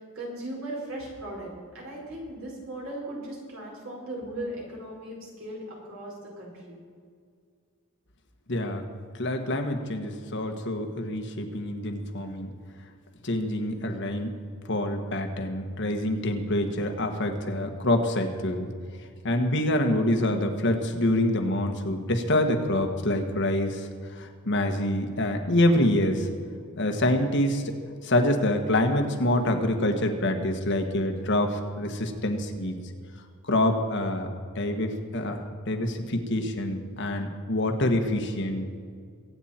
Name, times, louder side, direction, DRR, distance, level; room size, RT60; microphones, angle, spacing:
voice 1, 0.0-6.8 22.6-22.7, right 1 dB, 70° right, -3 dB, 4.7 m, -38 dB
voice 2, 8.5-8.8 9.2-12.5 13.2-14.4 14.7-18.7 19.2-26.3 26.8-27.7 28.0-32.7 33.5-34.3 34.5-38.8, left 1 dB, 60° left, 4 dB, 1.4 m, -26 dB
23.0 x 8.9 x 4.4 m, 2.1 s
head